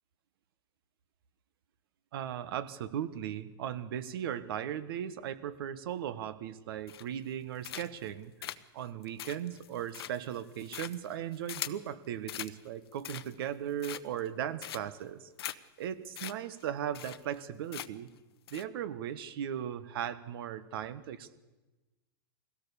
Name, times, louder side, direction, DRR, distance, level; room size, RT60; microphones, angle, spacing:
voice 1, 2.1-18.1 18.5-21.3, right 10 dB, 70° right, 14 dB, 1.4 m, -37 dB
sound 1, 6.9-7.3 7.6-8.1 8.4-11.9 12.3-12.5 12.9-13.5 13.8-14.3 14.6-15.0 15.4-15.6 15.8-15.9 16.2-16.3 16.6-16.7 16.9-17.4 17.7-18.1 18.5-18.6, left 11 dB, 80° left, 1.0 m, -41 dB
22.5 x 16.5 x 7.0 m, 1.2 s
hypercardioid pair, 120°, 13 cm